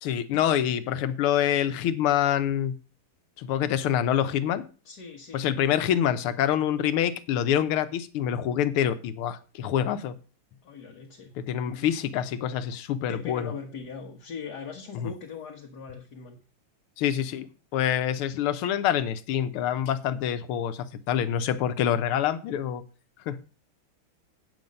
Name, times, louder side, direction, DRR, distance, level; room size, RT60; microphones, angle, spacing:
voice 1, 0.0-2.8 3.4-4.7 5.3-10.2 11.4-13.5 14.9-15.1 17.0-17.5 17.7-22.8 23.3-23.4, left 10 dB, 90° left, 12 dB, 1.7 m, -26 dB
voice 2, 4.9-5.5 10.6-11.3 11.7-12.1 13.1-16.4 21.4-21.5, left 6 dB, 55° left, 1 dB, 1.8 m, -40 dB
8.6 x 7.7 x 5.2 m, 0.36 s
omnidirectional pair, 2.4 m